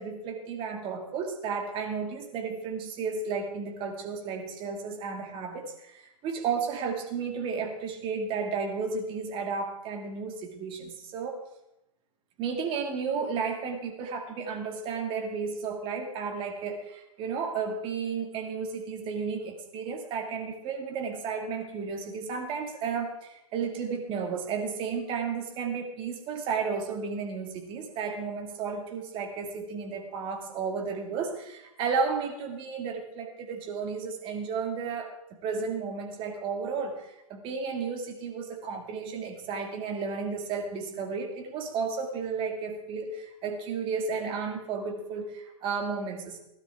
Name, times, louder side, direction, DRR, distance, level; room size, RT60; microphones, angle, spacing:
voice 1, 0.0-11.4 12.4-35.1 35.4-46.4, right 5 dB, 25° right, 3 dB, 2.1 m, -33 dB
17.0 x 12.0 x 3.6 m, 0.86 s
hypercardioid pair, 135°, 19 cm